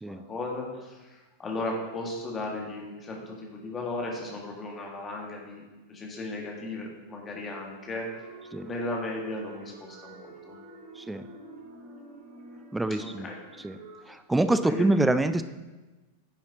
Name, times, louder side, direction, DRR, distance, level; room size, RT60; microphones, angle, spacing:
voice 1, 0.1-8.1 8.6-10.6 12.9-13.4 14.6-14.9, left 2 dB, 20° left, -1 dB, 1.9 m, -36 dB
sound 1, 7.9-14.1, right 2 dB, 40° right, 1.4 m, -49 dB
voice 2, 12.7-13.3 13.6-13.8 14.1-15.4, right 2 dB, 5° right, 10 dB, 0.4 m, -25 dB
9.9 x 7.1 x 2.9 m, 1.2 s
figure-of-eight pair, 90°, 0 cm